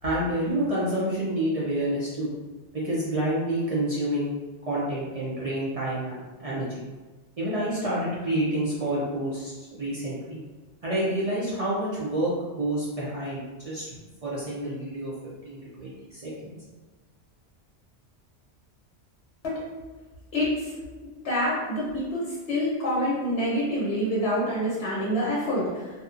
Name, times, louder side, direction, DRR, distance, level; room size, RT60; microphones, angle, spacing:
voice 1, 0.0-2.3 2.7-4.3 4.7-6.8 7.4-10.4 10.8-13.9 14.2-15.1 15.4-16.6, right 1 dB, 60° right, -8 dB, 0.4 m, -28 dB
voice 2, 20.3-20.7 21.0-25.9, equal, 70° left, -7 dB, 0.9 m, -27 dB
2.7 x 2.1 x 2.4 m, 1.3 s
omnidirectional pair, 1.2 m